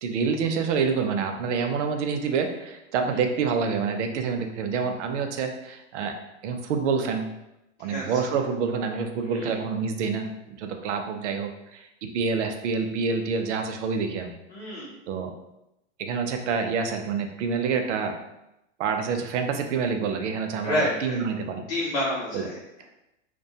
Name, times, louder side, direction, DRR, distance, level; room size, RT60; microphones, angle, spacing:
voice 1, 0.0-6.1 6.4-7.3 7.8-14.4 15.1-15.3 16.0-18.2 18.8-21.6 22.3-22.5, right 5 dB, 70° right, 5 dB, 0.5 m, -27 dB
voice 2, 14.5-14.9 20.6-21.2 21.7-22.8, left 1 dB, 40° left, -6 dB, 0.7 m, -29 dB
2.3 x 2.2 x 2.7 m, 0.90 s
supercardioid pair, 150°, 37 cm